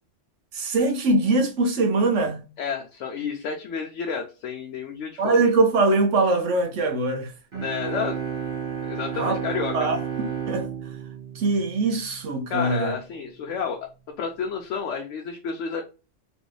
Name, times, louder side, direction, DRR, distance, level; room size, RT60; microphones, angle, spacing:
voice 1, 0.5-2.5 5.2-7.3 9.1-9.4 9.7-10.7 11.3-12.9, right 3 dB, 90° right, 1.1 m, -22 dB
voice 2, 2.6-5.4 7.6-8.2 8.8-9.9 12.5-13.8 14.2-15.8, left 6 dB, 90° left, 0.9 m, -30 dB
sound 1, 7.5-12.2, right 7 dB, 50° right, 1.3 m, -32 dB
3.1 x 2.6 x 3.1 m
omnidirectional pair, 1.2 m